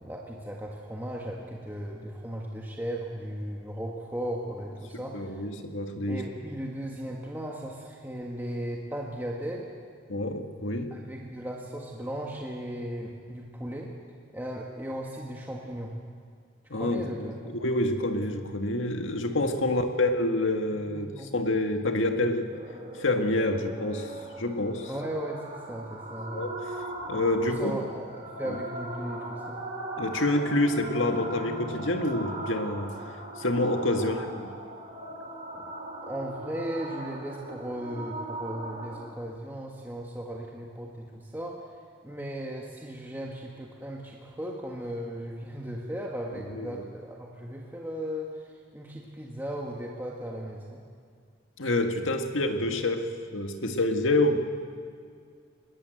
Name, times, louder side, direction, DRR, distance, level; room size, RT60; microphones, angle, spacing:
voice 1, 0.0-5.4 6.1-9.7 10.9-13.9 14.3-16.0 16.7-17.3 19.6-19.8 20.7-21.3 24.9-26.5 27.4-29.6 33.8-34.0 35.5-35.7 36.0-41.6 42.0-50.8, equal, 10° right, -2 dB, 1.6 m, -36 dB
voice 2, 5.1-6.2 10.1-11.0 16.7-22.5 23.0-24.1 24.4-24.9 26.3-26.5 27.1-27.8 28.5-28.6 30.0-33.0 33.4-34.5 46.5-46.8 51.6-54.4, left 1 dB, 80° left, 5 dB, 1.8 m, -27 dB
sound 1, 22.5-39.0, right 1 dB, 30° right, 4.3 m, -39 dB
21.0 x 20.0 x 7.8 m, 2.2 s
head